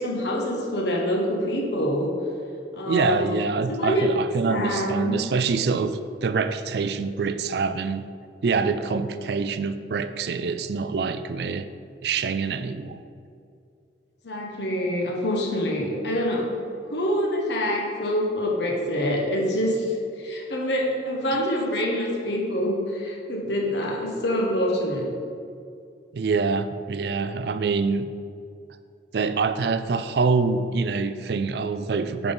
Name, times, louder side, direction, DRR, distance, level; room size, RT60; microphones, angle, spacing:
voice 1, 0.0-2.1 2.7-3.4 3.7-4.2 4.5-5.2 14.2-16.5 16.9-25.1, equal, 70° left, -1 dB, 1.2 m, -26 dB
voice 2, 2.9-8.1 8.4-11.7 12.0-13.0 26.1-28.1 29.1-32.3, right 4 dB, 65° right, 11 dB, 0.4 m, -25 dB
9.0 x 4.1 x 5.3 m, 2.3 s
head